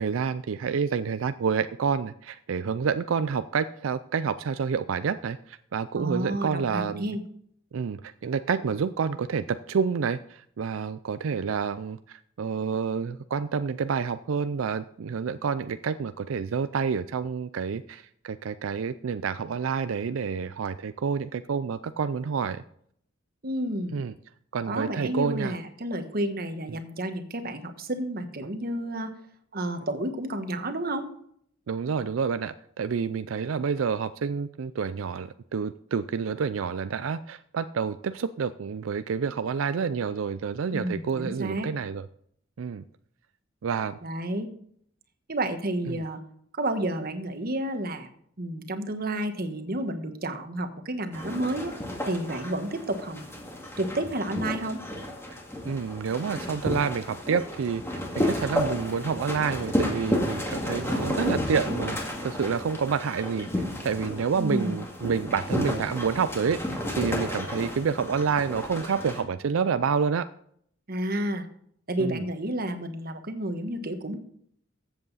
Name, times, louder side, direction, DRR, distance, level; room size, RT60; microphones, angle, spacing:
voice 1, 0.0-7.1 7.7-22.6 23.9-24.1 24.5-25.5 31.7-42.1 42.6-42.8 43.6-44.0 45.9-46.0 55.6-66.6 67.0-70.2 72.0-72.2, right 6 dB, 85° right, 12 dB, 0.4 m, -28 dB
voice 2, 5.9-7.2 23.4-24.0 24.7-29.1 29.5-31.1 40.7-41.7 44.0-44.5 45.3-46.2 46.6-48.1 48.4-51.7 52.1-53.2 53.8-54.8 64.4-64.8 70.9-71.4 71.9-74.2, right 1 dB, 50° right, 7 dB, 1.3 m, -30 dB
sound 1, 51.1-69.2, left 1 dB, 15° left, 2.1 m, -32 dB
14.0 x 8.0 x 4.1 m, 0.66 s
head